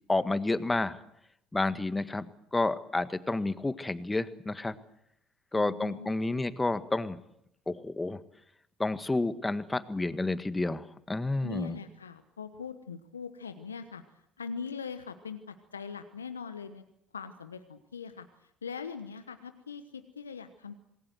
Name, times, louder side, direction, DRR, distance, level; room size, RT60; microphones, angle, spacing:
voice 1, 0.1-1.0 1.5-2.3 2.5-4.7 5.5-7.2 7.7-8.2 8.8-11.8, left 2 dB, 15° left, 12 dB, 1.7 m, -30 dB
voice 2, 5.5-6.6 11.4-14.0 14.4-16.8 17.1-20.8, left 6 dB, 85° left, 10 dB, 1.1 m, -41 dB
27.0 x 20.0 x 7.9 m, 0.80 s
figure-of-eight pair, 55°, 0 cm